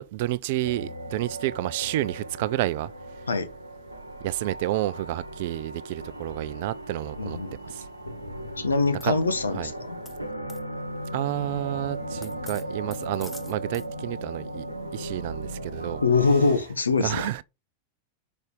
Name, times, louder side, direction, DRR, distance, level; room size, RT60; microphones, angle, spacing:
voice 1, 0.0-2.9 4.2-7.4 7.6-7.8 9.0-9.1 9.5-9.7 11.1-14.7 14.9-16.0 17.0-17.4, right 15 dB, 50° right, 0.4 m, -30 dB
sound 1, 0.6-16.6, right 1 dB, 90° right, 1.1 m, -37 dB
voice 2, 7.2-7.6 8.6-10.0 12.1-12.2 16.0-17.3, left 4 dB, 75° left, 0.9 m, -24 dB
sound 2, 9.0-9.1 10.1-10.2 10.5-10.6 12.2-13.9, left 2 dB, 10° left, 1.0 m, -44 dB
5.9 x 5.3 x 6.8 m
figure-of-eight pair, 90°, 0 cm